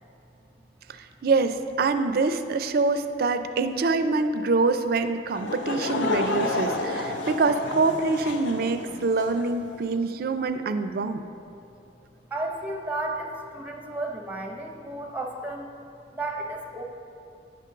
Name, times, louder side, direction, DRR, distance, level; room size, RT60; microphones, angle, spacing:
voice 1, 1.2-11.3, right 3 dB, 55° right, 10 dB, 0.4 m, -25 dB
Laughter / Crowd, 5.3-9.5, left 2 dB, 85° left, 0.7 m, -30 dB
voice 2, 12.3-15.7 16.1-16.8, right 2 dB, 10° right, 1 dB, 0.6 m, -33 dB
9.2 x 3.8 x 6.6 m, 2.7 s
head